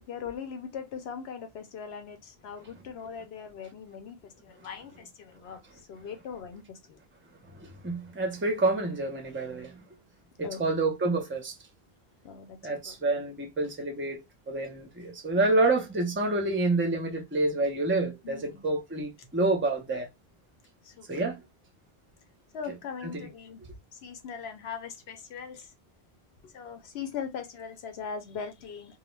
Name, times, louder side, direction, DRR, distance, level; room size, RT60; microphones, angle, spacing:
voice 1, 0.0-7.0 10.4-10.7 12.2-13.0 18.2-18.7 20.8-21.2 22.5-23.6 23.9-25.7 26.4-29.0, left 6 dB, 80° left, 0.9 m, -40 dB
voice 2, 7.5-9.8 10.4-11.6 12.6-20.1 21.1-21.4 23.0-23.1, right 2 dB, 15° right, 0.5 m, -28 dB
2.3 x 2.1 x 3.0 m
omnidirectional pair, 1.1 m